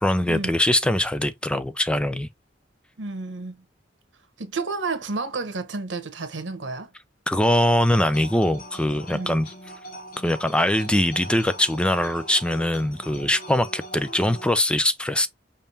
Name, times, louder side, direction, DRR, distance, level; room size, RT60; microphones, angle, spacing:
voice 1, 0.0-2.3 7.3-9.5 10.2-15.3, left 1 dB, 5° left, 0.4 m, -22 dB
voice 2, 3.0-3.6 4.4-6.9 9.1-9.4, right 3 dB, 85° right, 1.1 m, -31 dB
sound 1, 7.9-14.5, equal, 50° left, 1.1 m, -41 dB
5.4 x 3.5 x 2.7 m
head